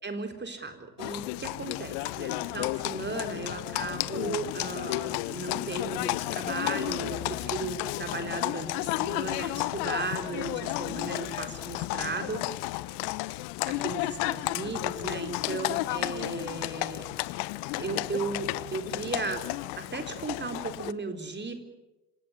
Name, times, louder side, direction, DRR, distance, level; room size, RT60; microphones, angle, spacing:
voice 1, 0.0-12.5 13.7-17.1 17.7-19.5 19.8-21.5, right 4 dB, 25° right, 6 dB, 4.0 m, -36 dB
Livestock farm animals working animals, 1.0-20.9, left 20 dB, 60° left, 1.0 m, -32 dB
26.0 x 17.0 x 9.8 m, 1.0 s
hypercardioid pair, 65°, 46 cm